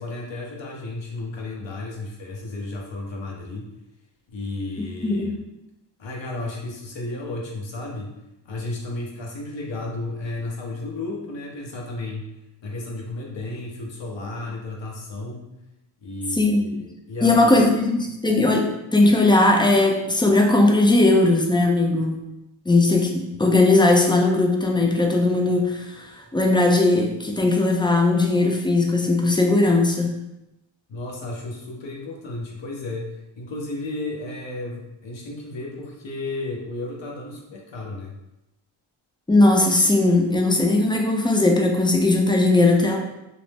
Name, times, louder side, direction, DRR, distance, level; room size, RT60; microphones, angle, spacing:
voice 1, 0.0-3.6 4.3-5.4 6.0-8.2 8.4-12.3 12.6-15.5 16.0-17.5 30.9-38.1, left 2 dB, 65° left, 0 dB, 0.8 m, -33 dB
voice 2, 5.0-5.4 16.3-16.8 17.2-22.2 22.7-26.1 26.3-30.2 39.3-43.0, left 2 dB, 10° left, 2 dB, 0.3 m, -18 dB
2.5 x 2.0 x 3.3 m, 0.90 s
cardioid pair, 65°, 48 cm